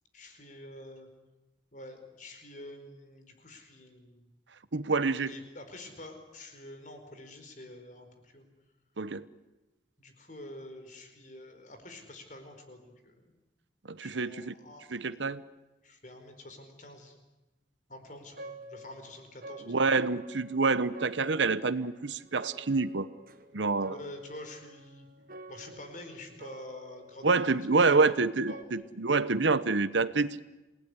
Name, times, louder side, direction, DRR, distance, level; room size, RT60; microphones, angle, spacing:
voice 1, 0.1-1.1 1.7-4.2 5.2-8.5 10.0-13.2 14.0-14.9 15.8-17.2 17.9-19.8 23.8-25.1 25.5-27.7 27.9-28.2 28.5-28.7, left 1 dB, 45° left, 6 dB, 4.7 m, -47 dB
voice 2, 4.7-5.3 9.0-9.2 13.9-14.5 14.9-15.4 19.7-23.1 23.5-23.9 27.2-30.4, right 3 dB, 80° right, 15 dB, 1.0 m, -27 dB
sound 1, 18.0-28.6, right 1 dB, 50° right, 1.5 m, -49 dB
27.5 x 19.0 x 9.9 m, 1.1 s
head